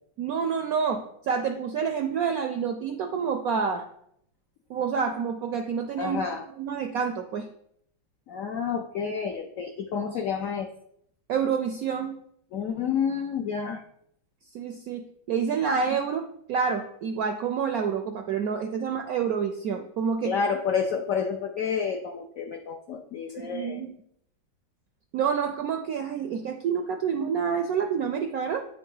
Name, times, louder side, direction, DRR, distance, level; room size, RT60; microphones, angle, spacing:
voice 1, 0.2-3.9 4.7-6.2 6.6-7.5 11.3-12.2 14.5-20.3 23.4-23.9 25.1-28.6, right 6 dB, 75° right, 6 dB, 0.8 m, -28 dB
voice 2, 6.0-6.5 8.3-10.7 12.5-13.8 20.2-23.8, left 6 dB, 80° left, 4 dB, 0.7 m, -29 dB
8.8 x 3.8 x 5.4 m, 0.71 s
omnidirectional pair, 2.1 m